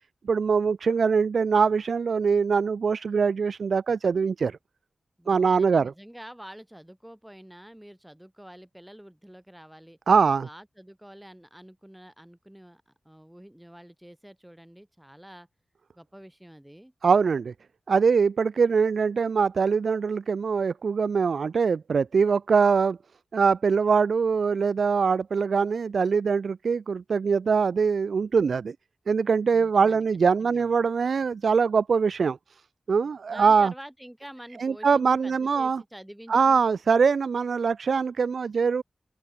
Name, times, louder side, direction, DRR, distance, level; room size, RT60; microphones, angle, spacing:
voice 1, 0.2-4.6 5.3-5.9 10.1-10.5 17.0-17.5 17.9-23.0 23.3-28.7 29.1-32.6 32.9-33.7 34.6-35.8 36.3-38.8, right 5 dB, 80° right, 1.6 m, -23 dB
voice 2, 5.2-10.0 10.4-15.5 15.9-16.9 29.5-30.0 30.4-30.7 33.3-36.6, equal, 5° right, 5.8 m, -47 dB
open air
wide cardioid pair, 125°, 0 cm